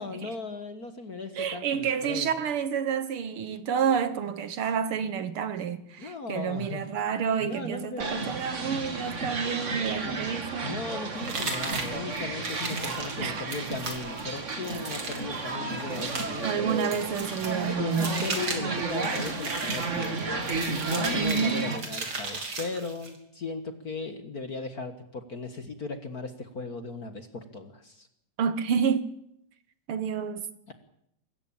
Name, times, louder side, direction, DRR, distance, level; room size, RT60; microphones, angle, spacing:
voice 1, 0.0-2.3 6.0-6.8 7.4-8.4 10.0-10.3 10.6-16.7 17.7-28.1 30.7-30.8, left 4 dB, 40° left, 1.4 m, -37 dB
voice 2, 1.3-10.8 13.2-13.5 16.4-18.2 21.1-21.7 28.4-29.1 29.9-30.5, right 7 dB, 60° right, 1.6 m, -29 dB
sound 1, 8.0-21.8, right 3 dB, 30° right, 1.9 m, -33 dB
sound 2, 11.3-23.2, right 4 dB, 45° right, 3.8 m, -36 dB
24.5 x 14.5 x 8.9 m
omnidirectional pair, 3.3 m